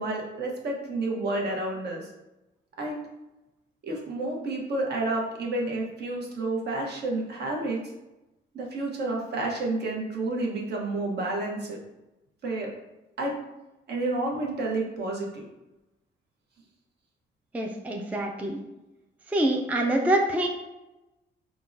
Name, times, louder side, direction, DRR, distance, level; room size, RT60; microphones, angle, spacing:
voice 1, 0.0-2.1 2.8-3.1 3.8-7.8 8.5-11.8 12.4-12.7 13.2-13.4 13.9-15.5, right 2 dB, 55° right, -1 dB, 0.8 m, -30 dB
voice 2, 17.5-18.6 19.3-20.5, right 1 dB, 5° right, 1 dB, 0.3 m, -25 dB
3.6 x 2.0 x 2.5 m, 0.97 s
cardioid pair, 90°, 20 cm